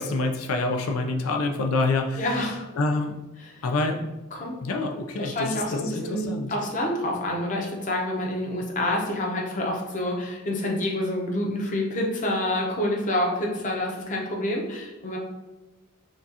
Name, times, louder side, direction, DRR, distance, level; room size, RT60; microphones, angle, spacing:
voice 1, 0.0-2.3 2.8-3.2 3.6-4.1 4.6-6.5, left 3 dB, 80° left, 3 dB, 0.4 m, -27 dB
voice 2, 2.2-2.6 3.4-3.6 4.3-4.6 5.2-15.2, left 1 dB, 35° left, -1 dB, 0.8 m, -28 dB
6.2 x 2.4 x 2.8 m, 1.1 s
head